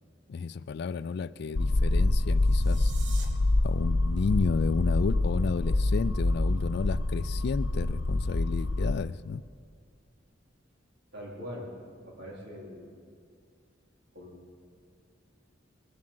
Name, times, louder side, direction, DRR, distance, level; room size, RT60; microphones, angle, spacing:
voice 1, 0.3-2.9 3.6-9.4, left 5 dB, 60° left, 17 dB, 0.4 m, -31 dB
sound 1, 1.5-9.0, left 2 dB, 80° left, 0.7 m, -26 dB
sound 2, 2.3-3.3, right 6 dB, 85° right, 1.6 m, -47 dB
voice 2, 11.1-11.7 12.0-13.0 14.1-14.4, equal, 60° right, -3 dB, 3.8 m, -42 dB
20.5 x 7.4 x 7.8 m, 2.3 s
head